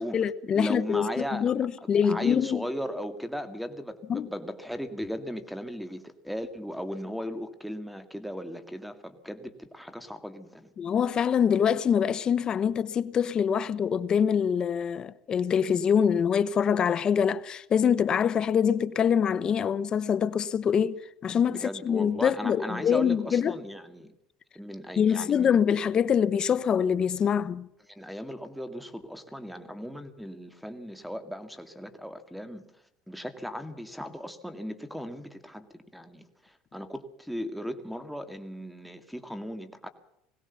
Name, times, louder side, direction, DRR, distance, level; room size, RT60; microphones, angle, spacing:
voice 1, 0.0-2.6 4.1-4.3 10.8-23.6 25.0-27.7, left 7 dB, 30° left, 1.0 m, -25 dB
voice 2, 0.5-1.5 1.8-10.7 21.5-24.1 24.6-25.6 27.2-27.3 27.9-32.6 33.1-39.9, equal, ahead, 2.1 m, -37 dB
21.5 x 17.5 x 7.0 m
cardioid pair, 135°, 3 cm